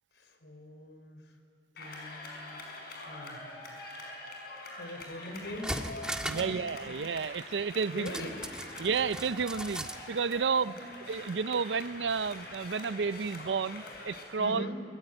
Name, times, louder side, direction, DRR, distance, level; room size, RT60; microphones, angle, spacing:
voice 1, 0.1-1.4 1.7-3.5 4.8-5.9 6.2-6.9 7.9-8.5 10.7-10.9 14.4-14.8, left 1 dB, 80° left, 6 dB, 4.1 m, -43 dB
sound 1, 1.8-14.2, left 2 dB, 65° left, 5.8 m, -44 dB
sound 2, 5.0-5.1 5.4-6.6 6.9-7.0 8.1-10.0 10.4-10.5, right 1 dB, 5° right, 1.7 m, -38 dB
voice 2, 6.2-8.3 8.8-10.7 11.1-14.7, right 5 dB, 85° right, 17 dB, 0.5 m, -31 dB
24.5 x 21.5 x 10.0 m, 2.6 s
head